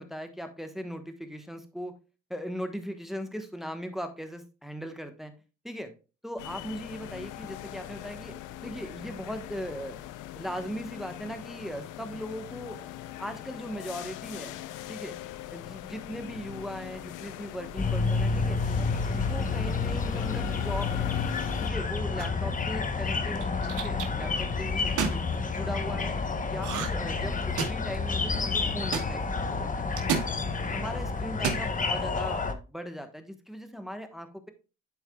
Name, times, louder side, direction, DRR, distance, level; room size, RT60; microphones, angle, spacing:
voice 1, 0.0-1.9 2.3-5.3 5.6-5.9 6.2-8.3 8.6-10.0 10.3-12.9 13.2-14.6 14.9-15.2 15.5-18.6 19.1-21.1 21.6-25.2 25.5-26.2 26.5-29.8 30.2-30.3 30.6-34.5, equal, ahead, 7 dB, 1.1 m, -38 dB
sound 1, 6.4-21.7, left 13 dB, 85° left, 0.5 m, -41 dB
sound 2, 17.8-32.5, left 4 dB, 25° left, 0.9 m, -29 dB
sound 3, 22.2-22.5 23.3-24.1 24.8-25.2 26.6-27.1 27.3-27.9 28.9-29.1 30.0-30.3 31.3-31.7, right 7 dB, 80° right, 1.3 m, -30 dB
11.5 x 4.5 x 2.2 m, 0.31 s
cardioid pair, 90°, 30 cm